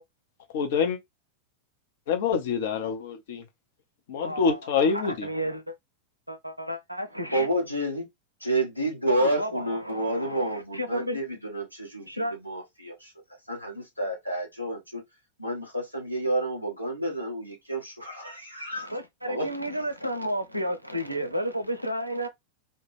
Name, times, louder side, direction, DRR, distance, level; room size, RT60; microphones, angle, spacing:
voice 1, 0.5-1.0 2.1-3.4 4.1-5.3, left 6 dB, 55° left, 0.5 m, -26 dB
voice 2, 4.2-5.8 6.3-7.5 9.1-11.2 12.1-12.3 18.7-22.3, equal, 90° right, 0.4 m, -32 dB
voice 3, 7.3-8.0 8.4-13.1 13.5-15.0 15.4-18.9 19.3-19.5, right 1 dB, 90° left, 0.9 m, -29 dB
2.1 x 2.1 x 3.1 m
figure-of-eight pair, 90°, 0 cm